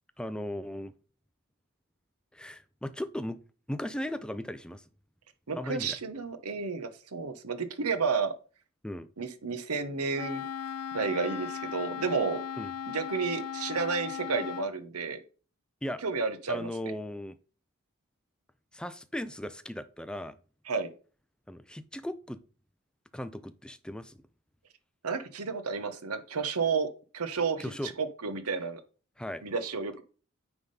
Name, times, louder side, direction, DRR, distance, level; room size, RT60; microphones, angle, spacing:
voice 1, 0.2-0.9 2.3-3.4 3.7-4.8 5.6-6.0 8.8-9.1 12.6-12.7 15.8-16.0 16.5-17.4 18.7-20.4 21.5-22.4 23.1-24.2 27.6-27.9 29.2-29.4, left 1 dB, 5° left, 13 dB, 0.4 m, -37 dB
voice 2, 5.5-8.3 9.2-10.4 10.9-12.4 12.9-15.2 16.0-16.9 20.7-20.9 25.0-28.8 29.4-30.0, right 5 dB, 80° right, 11 dB, 1.1 m, -31 dB
Wind instrument woodwind instrument, 10.1-14.7, left 8 dB, 90° left, 0.5 m, -37 dB
9.5 x 3.6 x 5.3 m, 0.38 s
head